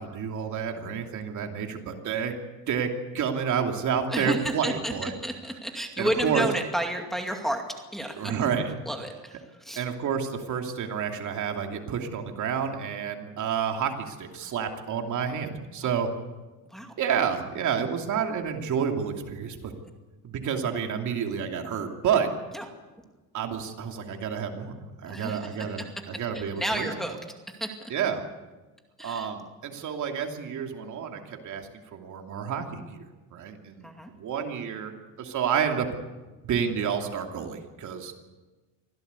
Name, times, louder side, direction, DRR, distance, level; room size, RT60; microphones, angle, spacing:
voice 1, 0.0-2.3 2.7-5.1 6.0-6.4 8.2-8.7 9.8-16.1 17.0-19.7 20.2-22.3 23.3-24.7 25.0-26.9 27.9-28.2 29.0-33.9 34.2-34.9 35.2-35.9 36.5-38.1, right 7 dB, 50° right, 3 dB, 2.9 m, -29 dB
voice 2, 4.1-7.6 7.9-8.3 8.9-9.8 16.7-16.9 22.5-22.6 25.1-25.8 26.3-27.2 27.5-27.9 29.0-29.3 33.8-34.1, right 1 dB, ahead, 2 dB, 2.3 m, -31 dB
25.0 x 16.5 x 8.3 m, 1.2 s
cardioid pair, 145°, 37 cm